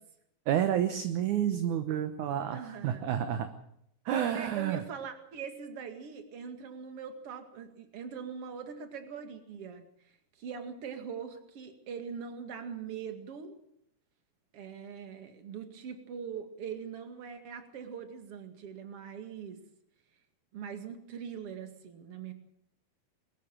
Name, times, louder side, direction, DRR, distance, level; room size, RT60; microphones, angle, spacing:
voice 1, 0.5-3.5 4.1-4.8, right 10 dB, 65° right, 9 dB, 2.1 m, -30 dB
voice 2, 2.5-3.1 4.3-9.8 10.4-13.6 14.5-19.6 20.5-22.3, right 7 dB, 45° right, 7 dB, 2.6 m, -42 dB
23.0 x 13.5 x 8.7 m, 0.73 s
omnidirectional pair, 4.6 m